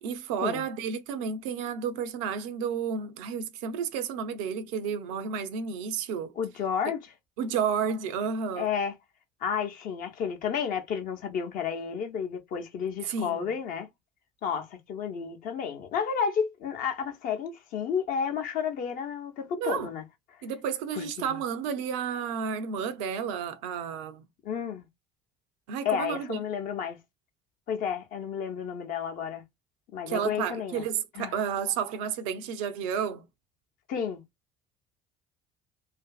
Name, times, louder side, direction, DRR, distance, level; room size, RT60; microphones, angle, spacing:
voice 1, 0.0-6.3 7.4-8.7 13.1-13.5 19.6-19.9 20.4-24.2 25.7-26.4 30.1-33.2, right 7 dB, 65° right, 0.5 m, -31 dB
voice 2, 6.4-7.0 8.6-8.9 9.4-13.9 14.4-20.0 20.9-21.4 24.4-24.9 25.8-27.0 27.7-29.4 29.9-30.8 31.1-31.3 33.9-34.2, left 7 dB, 50° left, 0.7 m, -31 dB
2.5 x 2.5 x 2.3 m
figure-of-eight pair, 55°, 18 cm